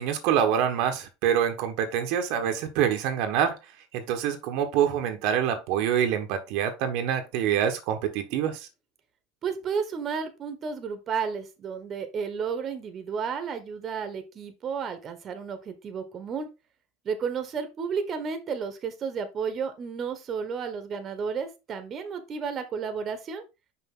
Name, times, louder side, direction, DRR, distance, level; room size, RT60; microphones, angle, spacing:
voice 1, 0.0-3.6 3.9-8.6, right 9 dB, 60° right, 1.2 m, -26 dB
voice 2, 9.4-16.5 17.0-23.4, right 6 dB, 30° right, 1.3 m, -32 dB
5.8 x 5.3 x 3.8 m
supercardioid pair, 135°, 0 cm